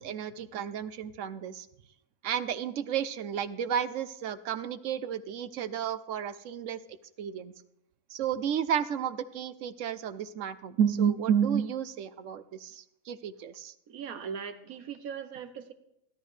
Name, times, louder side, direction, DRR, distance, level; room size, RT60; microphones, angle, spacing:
voice 1, 0.0-1.7 2.2-6.8 7.2-7.5 8.1-13.7, right 8 dB, 70° right, 14 dB, 1.0 m, -31 dB
voice 2, 13.9-15.7, right 7 dB, 90° right, 11 dB, 1.4 m, -39 dB
16.5 x 12.0 x 3.3 m, 0.80 s
omnidirectional pair, 1.5 m